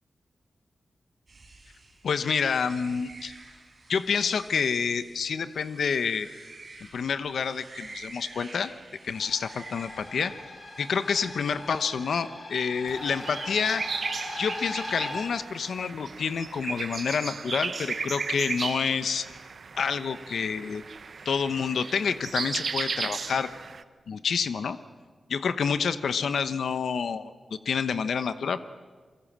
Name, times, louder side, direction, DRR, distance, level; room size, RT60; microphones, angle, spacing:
sound 1, 1.3-12.1, right 3 dB, 30° right, 5.2 m, -49 dB
voice 1, 2.0-3.3 3.9-6.3 6.9-8.7 9.0-10.3 10.8-13.8 14.4-19.3 19.7-20.8 21.2-23.5 24.1-24.8 25.3-27.3 27.6-28.6, left 6 dB, 80° left, 12 dB, 0.9 m, -28 dB
sound 2, 9.1-15.2, left 2 dB, 40° left, 6.5 m, -40 dB
sound 3, 12.9-23.8, right 5 dB, 50° right, 0.8 m, -35 dB
28.0 x 23.5 x 7.5 m, 1.5 s
wide cardioid pair, 180°, 0 cm